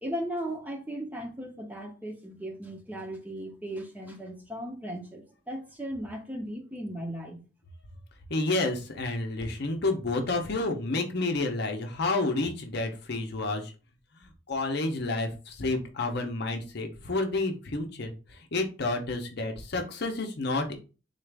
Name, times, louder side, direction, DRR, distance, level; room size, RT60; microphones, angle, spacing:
voice 1, 0.0-7.4, equal, 10° right, 1 dB, 0.6 m, -37 dB
voice 2, 8.3-13.7 14.2-20.7, left 2 dB, 55° left, 4 dB, 0.7 m, -30 dB
3.9 x 2.4 x 3.3 m, 0.33 s
head